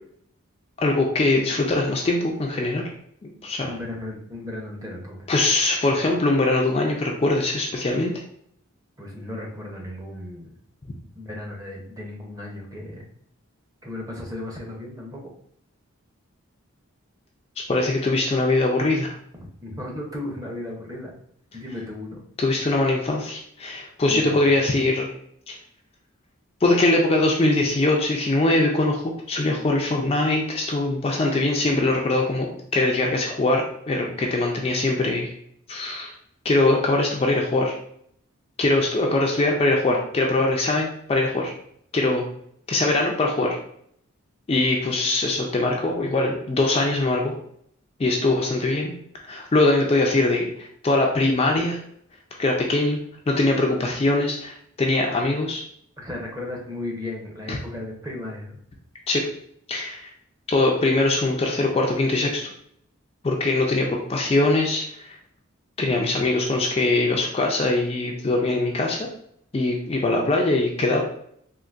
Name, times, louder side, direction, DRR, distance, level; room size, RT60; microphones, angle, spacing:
voice 1, 0.8-2.8 3.4-3.7 5.3-8.1 17.7-19.1 22.4-25.1 25.5-25.6 26.6-35.3 35.7-36.1 36.4-37.8 38.6-41.5 41.9-42.3 42.7-43.6 44.5-47.4 48.0-48.9 49.2-51.8 52.4-53.0 53.3-55.6 57.5-57.6 59.1-59.3 59.7-60.1 60.5-62.4 63.2-65.2 65.8-69.1 69.5-71.0, left 2 dB, 25° left, 0 dB, 0.3 m, -22 dB
voice 2, 3.6-5.2 9.0-10.5 11.2-13.1 13.8-15.2 19.4-21.1 21.5-22.2 24.1-24.5 56.0-58.6, left 1 dB, 15° right, -1 dB, 0.6 m, -35 dB
3.8 x 2.5 x 2.4 m, 0.67 s
head